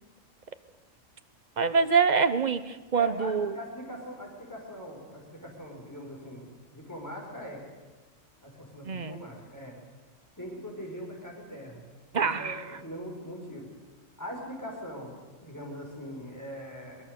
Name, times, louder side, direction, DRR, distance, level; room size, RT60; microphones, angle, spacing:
voice 1, 1.6-3.5 8.9-9.2 12.1-12.6, right 5 dB, 40° right, 11 dB, 0.8 m, -25 dB
voice 2, 2.9-7.6 8.4-9.8 10.4-11.8 12.2-13.7 14.2-15.1 15.4-17.0, equal, 15° left, -1 dB, 5.7 m, -41 dB
22.5 x 20.5 x 6.8 m, 1.3 s
omnidirectional pair, 1.4 m